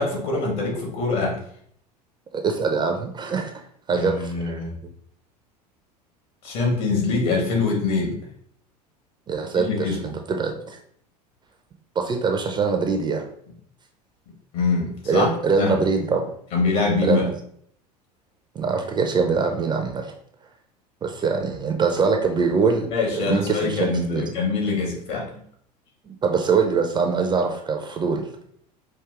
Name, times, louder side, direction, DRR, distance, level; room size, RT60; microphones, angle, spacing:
voice 1, 0.0-1.4 3.9-4.7 6.4-8.2 9.6-10.1 14.5-15.3 15.6-15.8 16.5-17.3 22.9-25.3, left 4 dB, 55° left, 0 dB, 1.7 m, -24 dB
voice 2, 2.3-3.5 3.9-4.6 9.3-10.0 10.3-10.8 12.0-13.2 15.1-16.3 17.0-17.3 18.5-20.1 21.0-24.3 26.2-28.3, right 5 dB, 20° right, 4 dB, 0.5 m, -23 dB
4.9 x 2.6 x 3.6 m, 0.65 s
figure-of-eight pair, 75°, 21 cm